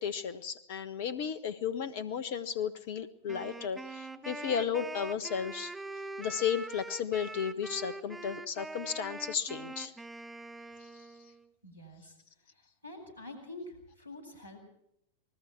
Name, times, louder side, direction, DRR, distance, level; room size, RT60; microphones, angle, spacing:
voice 1, 0.0-5.7 6.2-9.9 10.8-10.9, left 7 dB, 50° left, 14 dB, 1.3 m, -34 dB
Wind instrument woodwind instrument, 3.3-11.4, right 2 dB, 5° right, 1.5 m, -43 dB
voice 2, 11.6-12.1 12.8-14.6, left 2 dB, 80° right, 6 dB, 8.0 m, -46 dB
28.5 x 20.0 x 4.6 m, 0.76 s
figure-of-eight pair, 90°, 0 cm